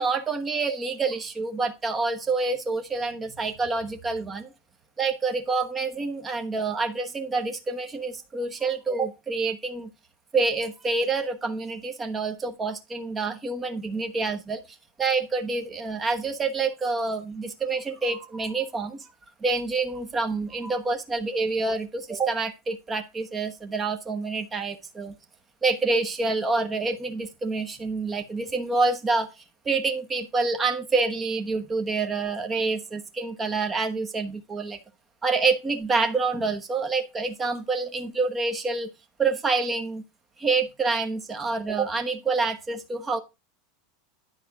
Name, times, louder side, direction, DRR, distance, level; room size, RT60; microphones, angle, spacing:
voice 1, 0.0-4.5 5.0-9.9 10.3-14.6 15.0-19.1 19.4-25.1 25.6-29.3 29.6-34.8 35.2-38.9 39.2-40.0 40.4-43.2, right 3 dB, 15° right, 6 dB, 1.1 m, -27 dB
10.5 x 4.2 x 5.9 m, 0.26 s
supercardioid pair, 165°, 0 cm